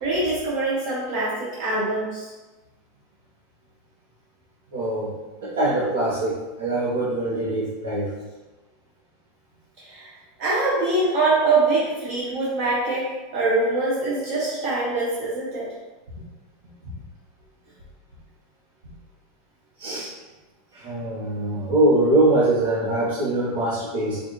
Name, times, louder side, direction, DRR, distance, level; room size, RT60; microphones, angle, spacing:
voice 1, 0.0-2.3 9.8-10.1 10.4-15.7, right 2 dB, 50° right, -6 dB, 0.8 m, -24 dB
voice 2, 4.7-8.1 16.8-16.9 19.8-20.1 20.7-24.2, right 2 dB, 90° right, -9 dB, 0.9 m, -23 dB
4.5 x 2.4 x 3.0 m, 1.2 s
supercardioid pair, 165°, 0 cm